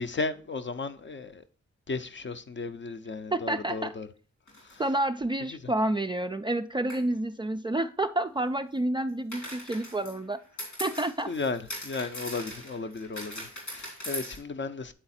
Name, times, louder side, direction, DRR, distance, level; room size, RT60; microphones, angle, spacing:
voice 1, 0.0-1.4 1.9-4.1 4.7-4.8 11.3-14.9, left 3 dB, 40° left, 0.7 m, -34 dB
voice 2, 3.3-3.9 4.8-10.4 10.8-11.3, right 1 dB, 15° right, 0.4 m, -29 dB
sound 1, 4.5-4.8 6.9-7.0 9.3-14.4, left 1 dB, 85° left, 3.1 m, -40 dB
8.8 x 3.9 x 4.2 m
supercardioid pair, 45°, 30 cm